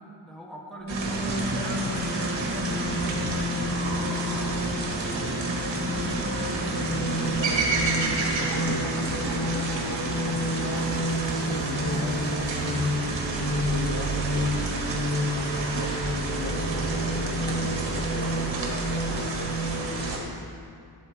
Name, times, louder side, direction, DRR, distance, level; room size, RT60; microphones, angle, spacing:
voice 1, 0.0-6.6, right 1 dB, ahead, -2 dB, 1.3 m, -43 dB
sound 1, 0.8-20.0, equal, 85° left, 2.7 m, -31 dB
sound 2, 0.9-20.2, right 3 dB, 70° right, 1.7 m, -30 dB
voice 2, 7.2-10.9 11.4-12.8 13.3-14.9 15.3-19.7 20.0-20.5, left 5 dB, 50° left, 3 dB, 0.6 m, -40 dB
sound 3, 8.1-14.2, right 2 dB, 45° right, 0.7 m, -45 dB
12.0 x 8.1 x 3.6 m, 2.3 s
wide cardioid pair, 135°, 45 cm